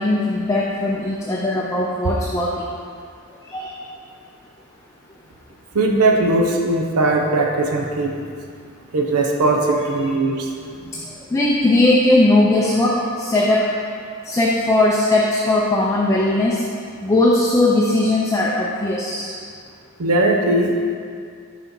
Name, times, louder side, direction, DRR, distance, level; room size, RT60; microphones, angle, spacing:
voice 1, 0.0-2.7 3.5-3.8 10.9-11.0 11.3-13.7 14.2-16.6 17.0-19.3, left 2 dB, 15° left, -3 dB, 0.4 m, -18 dB
voice 2, 5.7-8.1 8.9-10.5 20.0-20.7, right 2 dB, 85° right, 0 dB, 0.7 m, -19 dB
5.9 x 4.3 x 5.4 m, 2.2 s
head